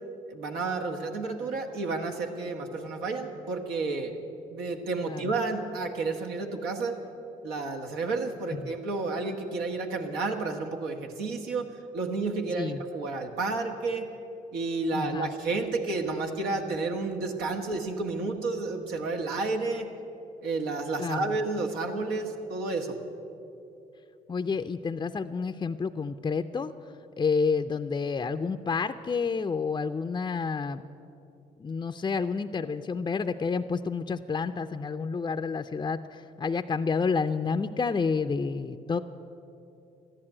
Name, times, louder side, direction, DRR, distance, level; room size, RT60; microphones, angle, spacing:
voice 1, 0.3-4.2 4.5-7.0 7.4-14.1 14.5-19.9 20.4-23.0, right 3 dB, 85° right, 3 dB, 1.5 m, -31 dB
voice 2, 14.9-15.3 21.0-21.4 24.3-26.7 27.2-30.8 31.6-39.0, left 5 dB, 25° left, 7 dB, 0.5 m, -29 dB
13.5 x 11.0 x 8.7 m, 2.8 s
supercardioid pair, 70°, 16 cm